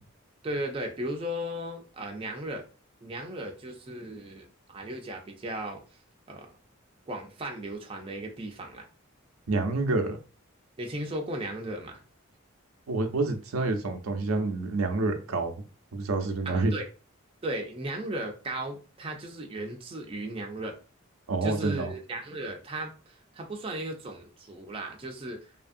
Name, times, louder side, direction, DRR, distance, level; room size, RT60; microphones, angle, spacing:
voice 1, 0.4-2.6 3.0-5.8 6.3-6.5 7.1-8.9 10.8-12.0 16.4-16.9 17.4-20.8 21.4-25.6, right 1 dB, 25° right, 0.4 m, -36 dB
voice 2, 9.5-10.2 12.9-15.5 15.9-16.7 21.3-21.9, right 3 dB, 90° right, 0.5 m, -28 dB
2.7 x 2.5 x 2.5 m
head